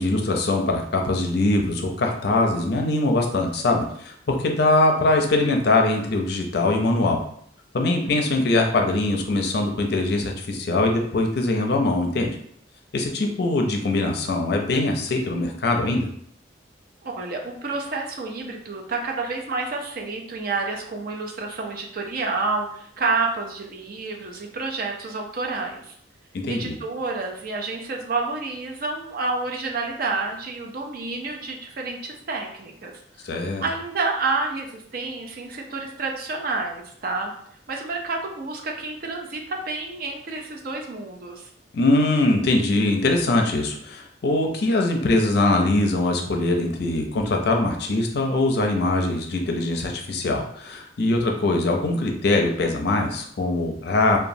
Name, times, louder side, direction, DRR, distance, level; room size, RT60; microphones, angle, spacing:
voice 1, 0.0-7.2 7.7-12.3 12.9-16.1 26.3-26.8 33.2-33.6 41.7-54.2, left 2 dB, 55° left, 2 dB, 0.5 m, -22 dB
voice 2, 8.0-8.4 17.0-26.0 26.5-32.9 33.2-33.3 33.6-37.3 37.7-41.5, right 3 dB, 50° right, 1 dB, 0.5 m, -29 dB
3.0 x 2.2 x 2.6 m, 0.67 s
head